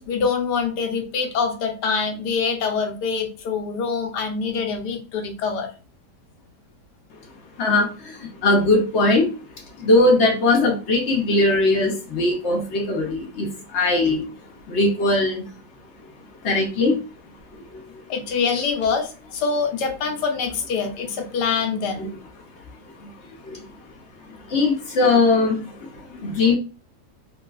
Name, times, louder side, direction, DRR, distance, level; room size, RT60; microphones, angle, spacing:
voice 1, 0.0-5.7 18.1-22.1 26.1-26.2, left 5 dB, 75° left, 3 dB, 1.4 m, -25 dB
voice 2, 7.6-9.4 9.8-14.3 14.7-15.4 16.4-17.0 17.7-17.8 22.0-22.1 23.0-23.1 23.4-23.6 24.2-26.6, left 2 dB, 50° left, 0 dB, 0.9 m, -20 dB
3.3 x 2.9 x 2.3 m, 0.34 s
omnidirectional pair, 1.8 m